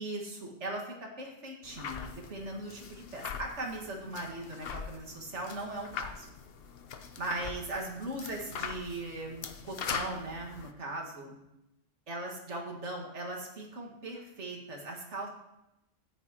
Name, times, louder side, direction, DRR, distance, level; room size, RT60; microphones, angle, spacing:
voice 1, 0.0-6.3 7.2-11.4 12.1-15.3, right 2 dB, 65° right, 0 dB, 2.1 m, -39 dB
sound 1, 1.6-10.7, left 6 dB, 55° left, 0.8 m, -42 dB
13.5 x 9.4 x 2.9 m, 0.89 s
omnidirectional pair, 1.3 m